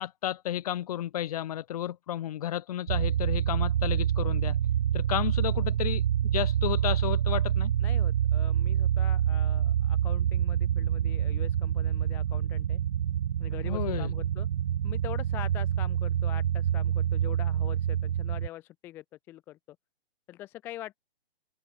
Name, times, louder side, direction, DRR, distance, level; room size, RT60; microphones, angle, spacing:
voice 1, 0.0-4.6 4.9-7.7 13.6-14.1, left 12 dB, 35° left, 5.9 m, -32 dB
sound 1, 2.9-18.5, right 10 dB, 40° right, 1.3 m, -27 dB
voice 2, 7.8-12.8 13.4-14.5 14.8-19.8 20.3-21.0, left 14 dB, 5° left, 0.7 m, -44 dB
hypercardioid pair, 170°, 31 cm